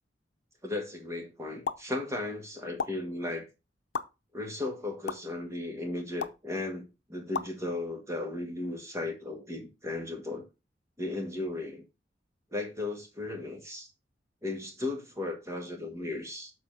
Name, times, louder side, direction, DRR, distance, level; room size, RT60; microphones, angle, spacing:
voice 1, 0.6-3.5 4.3-10.5 11.0-11.8 12.5-13.9 14.4-16.5, left 2 dB, 15° right, 1.8 m, -36 dB
Bubbles Pop Mouth Lips Smack, 1.7-1.8 2.8-2.9 3.9-4.0 5.1-5.2 6.2-6.4 7.3-7.5, left 5 dB, 80° left, 0.7 m, -32 dB
7.1 x 4.3 x 5.5 m
head